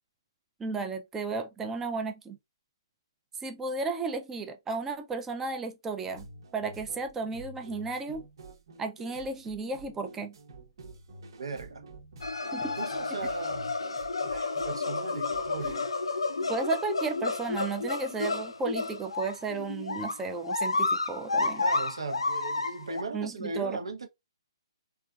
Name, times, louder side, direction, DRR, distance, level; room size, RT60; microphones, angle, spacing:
voice 1, 0.6-2.4 3.4-6.3 6.5-8.2 8.8-10.4 12.5-12.8 16.5-21.6 23.1-23.8, right 4 dB, 10° right, 0.4 m, -34 dB
sound 1, 6.1-15.7, right 2 dB, 55° right, 0.9 m, -49 dB
voice 2, 11.4-11.8 12.8-13.7 14.3-15.9 21.4-24.1, right 3 dB, 80° right, 0.8 m, -37 dB
sound 2, 12.2-23.0, left 3 dB, 85° left, 0.4 m, -31 dB
3.3 x 2.4 x 2.3 m
hypercardioid pair, 140°, 3 cm